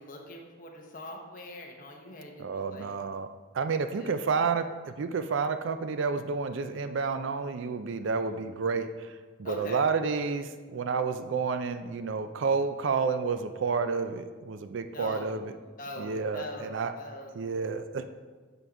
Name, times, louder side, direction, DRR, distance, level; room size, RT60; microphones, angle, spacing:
voice 1, 0.0-3.0 4.0-4.2 8.0-8.4 9.4-9.8 14.9-15.3 15.6-17.4, left 1 dB, 40° left, 1 dB, 1.0 m, -43 dB
voice 2, 2.4-3.3 3.5-15.5 16.0-16.9 17.3-18.0, right 5 dB, 60° right, 9 dB, 0.4 m, -30 dB
9.1 x 4.0 x 4.6 m, 1.4 s
head